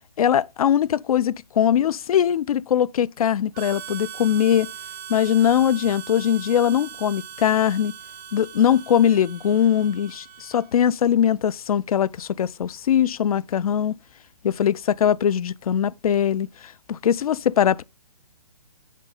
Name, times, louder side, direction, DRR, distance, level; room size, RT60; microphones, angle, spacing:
voice 1, 0.2-4.7 5.1-7.9 8.3-14.0 14.4-17.8, left 9 dB, 70° left, 0.4 m, -21 dB
Harmonica, 3.5-10.8, right 9 dB, 20° right, 0.4 m, -40 dB
7.4 x 5.2 x 3.9 m
hypercardioid pair, 140°, 20 cm